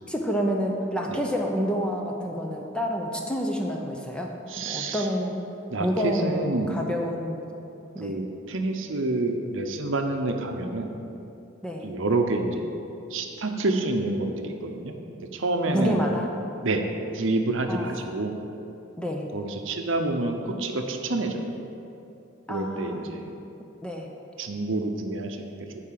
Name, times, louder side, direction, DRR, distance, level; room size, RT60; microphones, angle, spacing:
voice 1, 0.1-4.3 4.6-5.5 5.8-7.5 7.9-8.2 11.6-11.9 15.7-16.3 17.7-18.0 19.0-19.3 22.5-23.1 23.8-24.1, equal, 5° left, 0 dB, 0.6 m, -28 dB
voice 2, 4.5-5.1 5.7-6.8 8.0-10.9 11.8-12.7 13.1-14.9 15.3-16.0 16.6-16.8 17.1-18.4 19.3-21.5 22.5-23.3 24.4-25.7, right 2 dB, 65° right, 4 dB, 0.7 m, -28 dB
8.3 x 4.9 x 7.5 m, 2.8 s
head